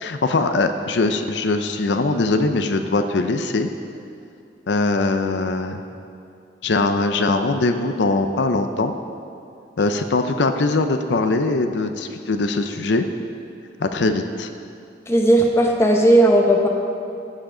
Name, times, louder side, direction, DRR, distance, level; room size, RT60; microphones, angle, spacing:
voice 1, 0.0-3.7 4.7-5.8 6.6-8.9 9.8-13.1 13.8-14.5, left 3 dB, 90° left, 7 dB, 0.6 m, -21 dB
voice 2, 15.1-16.7, right 1 dB, 15° left, 1 dB, 0.9 m, -15 dB
14.5 x 7.3 x 3.8 m, 2.6 s
head